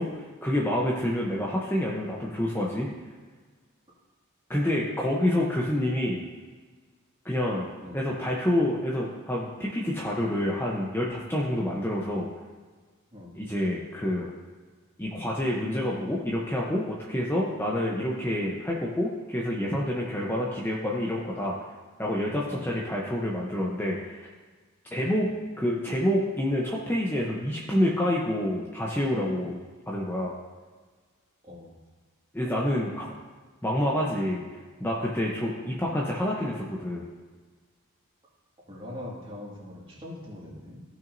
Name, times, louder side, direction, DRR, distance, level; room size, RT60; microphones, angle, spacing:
voice 1, 0.0-2.9 4.5-6.2 7.2-7.7 7.9-12.3 13.3-14.3 15.0-21.5 22.0-24.3 24.9-25.3 25.6-29.6 29.9-30.3 32.3-33.1 33.6-34.4 34.8-37.1, left 1 dB, 10° left, -3 dB, 0.7 m, -28 dB
voice 2, 31.4-31.8 38.7-40.8, left 1 dB, 25° right, -4 dB, 2.0 m, -42 dB
15.0 x 6.1 x 2.7 m, 1.4 s
head